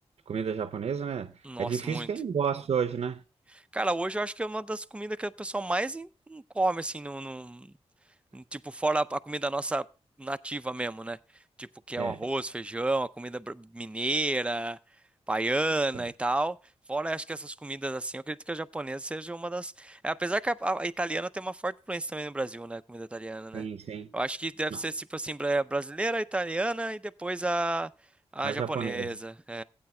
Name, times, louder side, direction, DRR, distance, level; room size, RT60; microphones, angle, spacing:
voice 1, 0.3-3.2 12.0-12.2 15.9-16.1 23.5-24.2 24.7-24.8 28.4-29.1, right 7 dB, 70° right, 0.6 m, -32 dB
voice 2, 1.4-2.1 3.7-7.7 8.3-9.8 10.2-11.2 11.6-14.8 15.3-16.6 16.9-23.7 24.1-27.9 28.3-29.6, right 2 dB, 10° right, 0.5 m, -31 dB
16.5 x 8.8 x 2.2 m
wide cardioid pair, 85°, 11 cm